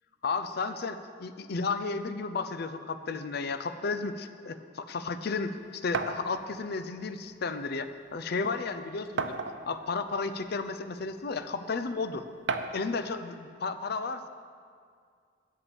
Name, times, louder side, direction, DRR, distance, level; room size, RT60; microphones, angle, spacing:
voice 1, 0.2-9.4 9.7-12.3 12.7-14.3, left 4 dB, 55° left, 10 dB, 0.5 m, -33 dB
sound 1, 5.9-6.2 7.4-7.5 7.9-8.0 9.2-9.8 10.7-10.8 12.5-12.9, right 4 dB, 65° right, 0.5 m, -32 dB
8.5 x 7.0 x 6.9 m, 2.2 s
head